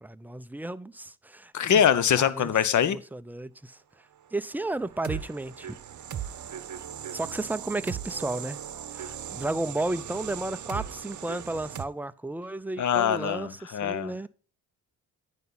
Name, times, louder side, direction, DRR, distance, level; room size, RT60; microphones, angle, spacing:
voice 1, 0.0-1.8 2.2-3.8 4.3-5.8 7.1-8.6 8.9-14.3, right 2 dB, 5° right, 0.4 m, -33 dB
voice 2, 1.5-3.0 12.8-14.1, left 9 dB, 40° left, 0.8 m, -23 dB
sound 1, 4.5-11.8, right 9 dB, 40° right, 0.9 m, -38 dB
9.2 x 5.5 x 3.9 m
hypercardioid pair, 45°, 44 cm